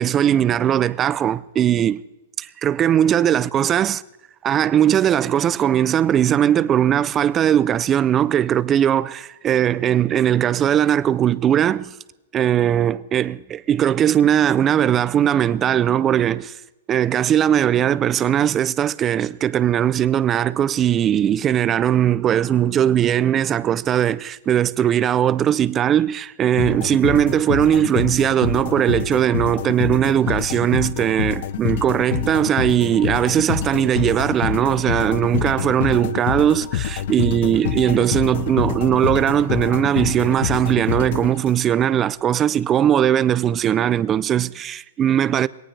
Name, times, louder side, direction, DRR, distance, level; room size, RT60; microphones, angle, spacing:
voice 1, 0.0-2.0 2.4-4.0 4.4-11.9 12.3-16.5 16.9-45.5, right 10 dB, 20° right, 0.5 m, -19 dB
sound 1, 26.6-41.8, left 10 dB, 55° left, 0.8 m, -26 dB
22.0 x 18.5 x 3.4 m
hypercardioid pair, 155°, 0 cm